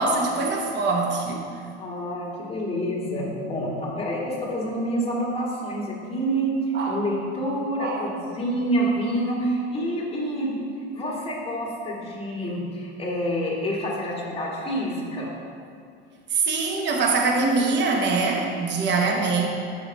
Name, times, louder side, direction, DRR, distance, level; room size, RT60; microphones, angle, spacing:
voice 1, 0.0-1.5 6.7-7.0 7.8-8.1 16.3-19.5, right 3 dB, 35° right, 2 dB, 1.0 m, -23 dB
voice 2, 1.8-6.5 6.9-10.6 10.9-15.3, equal, 20° left, -4 dB, 1.7 m, -28 dB
5.7 x 5.0 x 5.3 m, 2.5 s
supercardioid pair, 110°, 30 cm